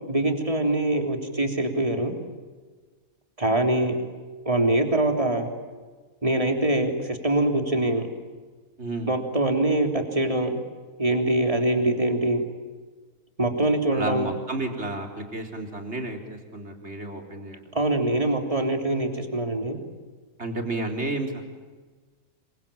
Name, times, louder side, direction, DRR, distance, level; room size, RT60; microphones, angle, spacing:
voice 1, 0.1-2.1 3.4-4.0 4.5-5.5 6.2-8.1 9.1-10.6 11.0-12.4 13.4-14.3 17.7-19.8, right 1 dB, 25° right, 4 dB, 3.6 m, -23 dB
voice 2, 8.8-9.1 13.9-17.6 20.4-21.4, right 2 dB, 50° right, 3 dB, 4.3 m, -31 dB
27.0 x 25.0 x 8.9 m, 1.4 s
omnidirectional pair, 1.5 m